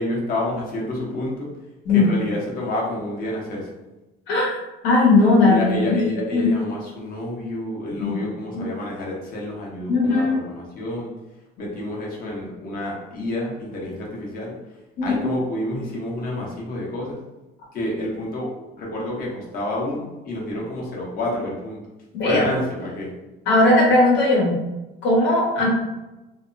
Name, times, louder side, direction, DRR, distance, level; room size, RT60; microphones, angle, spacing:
voice 1, 0.0-1.5 1.9-3.7 5.4-11.1 11.6-14.5 15.0-17.2 17.7-18.5 18.8-21.8 22.2-23.1, left 1 dB, 55° left, -3 dB, 0.9 m, -28 dB
voice 2, 4.8-6.0 6.3-6.5 8.0-8.2 8.5-8.6 9.9-10.4 15.0-15.2 22.1-22.4 23.5-24.6 25.0-25.7, left 2 dB, 80° left, -5 dB, 1.1 m, -18 dB
2.7 x 2.1 x 2.5 m, 1.0 s
cardioid pair, 110°, 18 cm